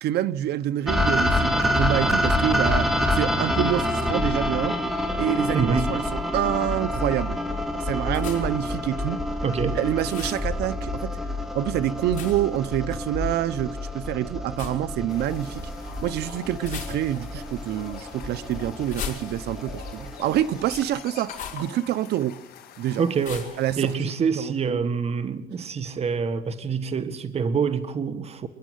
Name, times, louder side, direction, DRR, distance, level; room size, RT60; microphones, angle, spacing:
voice 1, 0.0-4.8 5.2-7.4 7.7-9.2 9.6-11.1 11.5-15.7 16.0-22.4 22.8-23.0 23.6-23.9 24.4-24.8, right 12 dB, 75° right, 1.0 m, -27 dB
sound 1, 0.9-20.8, left 1 dB, ahead, 2.7 m, -27 dB
voice 2, 5.5-6.0 9.4-9.8 23.0-28.5, right 6 dB, 40° right, 1.8 m, -26 dB
sound 2, 8.1-8.7 10.0-10.5 12.1-12.6 14.5-14.8 16.6-17.3 18.8-19.7 21.2-21.7 23.2-23.6, left 8 dB, 50° left, 5.8 m, -37 dB
sound 3, 15.1-24.0, left 8 dB, 65° left, 5.6 m, -45 dB
29.0 x 10.5 x 9.3 m
cardioid pair, 110°, 17 cm